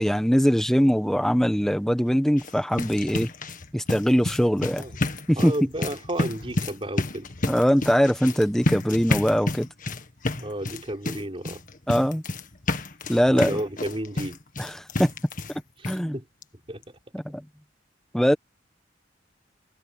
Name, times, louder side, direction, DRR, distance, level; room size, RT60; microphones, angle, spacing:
voice 1, 0.0-3.3 3.7-4.8 5.3-5.5 7.5-9.7 11.9-12.2 13.1-13.6 14.6-14.7 15.0-15.1 15.9-16.2 17.1-17.4 18.1-18.4, equal, 5° left, 1.4 m, -21 dB
sound 1, 2.3-15.6 15.8-16.0 16.4-16.5 16.8-16.9, left 2 dB, 45° left, 1.7 m, -30 dB
voice 2, 5.4-7.3 10.4-11.6 13.3-14.4 15.8-16.2 16.7-16.8, right 1 dB, 30° right, 4.4 m, -32 dB
head